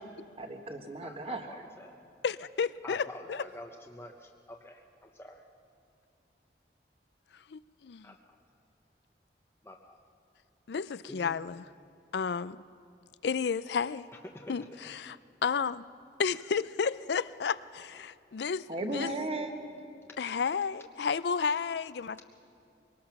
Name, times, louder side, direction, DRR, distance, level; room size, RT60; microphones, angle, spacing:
voice 1, 0.4-1.5 18.7-19.5, right 2 dB, 30° right, 5 dB, 1.4 m, -35 dB
voice 2, 1.0-2.0 2.8-5.4 8.0-8.1 9.6-10.0 11.1-11.3 14.3-14.5, left 1 dB, 15° left, 1 dB, 0.7 m, -47 dB
voice 3, 2.2-3.5 7.5-8.1 10.7-11.7 12.1-12.6 13.2-14.1 14.5-15.9 16.2-19.1 20.2-22.2, left 6 dB, 75° left, 17 dB, 0.4 m, -32 dB
23.5 x 19.0 x 6.0 m, 2.5 s
head